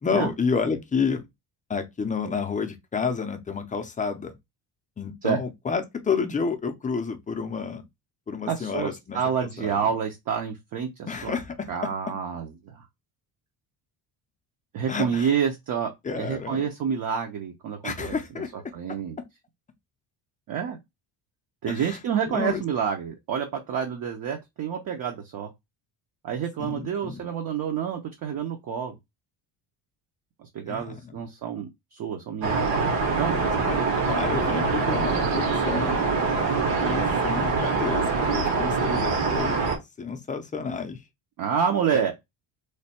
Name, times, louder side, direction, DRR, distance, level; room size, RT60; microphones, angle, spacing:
voice 1, 0.0-1.3 1.7-4.4 5.0-7.8 8.3-9.9 11.1-11.9 14.9-15.3 16.0-16.7 17.8-18.5 21.7-22.0 22.3-22.6 26.6-27.3 30.7-31.2 33.3-33.8 34.1-36.1 36.8-39.6 40.0-41.0 41.9-42.1, left 5 dB, 20° left, 0.4 m, -30 dB
voice 2, 8.5-11.3 11.7-12.9 14.7-18.2 18.7-19.2 20.5-20.8 21.6-25.5 26.2-29.0 30.4-32.6 33.0-33.3 41.4-42.1, right 7 dB, 50° right, 0.6 m, -28 dB
sound 1, 32.4-39.8, right 4 dB, 75° right, 1.2 m, -24 dB
3.2 x 2.2 x 4.1 m
cardioid pair, 125°, 45 cm